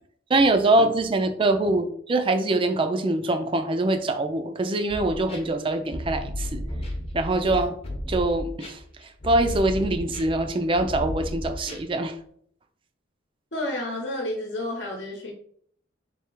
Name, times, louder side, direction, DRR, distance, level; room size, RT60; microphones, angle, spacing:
voice 1, 0.3-6.6 7.1-7.8 8.1-8.8 9.2-12.1, right 2 dB, 25° right, 8 dB, 0.4 m, -23 dB
sound 1, 4.9-12.1, left 1 dB, 30° left, 0.8 m, -33 dB
voice 2, 13.5-15.3, left 1 dB, 65° left, 0 dB, 0.9 m, -30 dB
3.3 x 2.8 x 4.5 m, 0.62 s
head